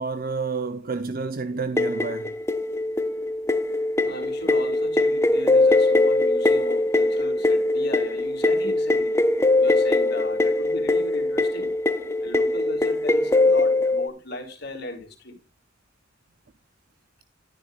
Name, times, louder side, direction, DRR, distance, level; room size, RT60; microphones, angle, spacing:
voice 1, 0.0-2.3, right 4 dB, 50° right, 0.6 m, -29 dB
sound 1, 1.8-14.1, left 2 dB, 15° left, 0.6 m, -22 dB
voice 2, 4.0-9.1 9.6-11.7 12.2-15.4, left 1 dB, 60° left, 3.4 m, -37 dB
12.5 x 10.5 x 2.4 m
head